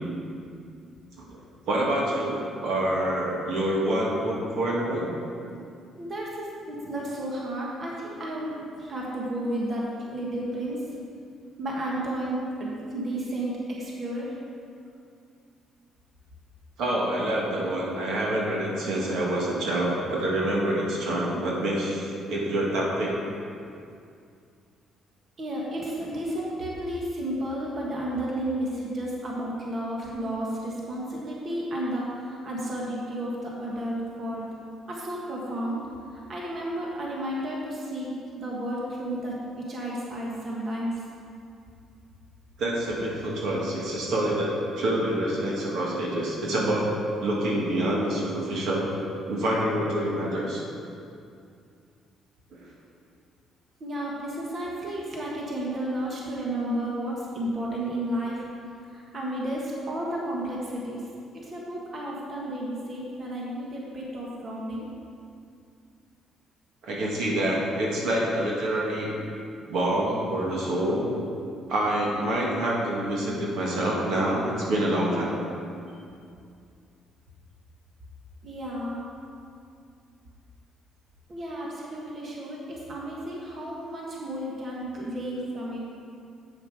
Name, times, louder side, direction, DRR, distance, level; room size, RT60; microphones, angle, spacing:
voice 1, 1.7-5.1 16.8-23.1 42.6-46.9 47.2-48.9 49.3-50.6 52.5-52.7 66.8-69.1 69.7-71.0 71.7-75.4, right 1 dB, 75° right, -4 dB, 1.9 m, -26 dB
voice 2, 6.0-10.8 11.6-14.3 25.4-34.4 34.9-35.8 36.3-40.9 53.8-58.4 58.9-61.1 61.3-64.9 78.4-79.1 81.3-85.8, right 1 dB, 45° right, -4 dB, 1.7 m, -32 dB
8.1 x 7.5 x 4.9 m, 2.4 s
cardioid pair, 100°, 0 cm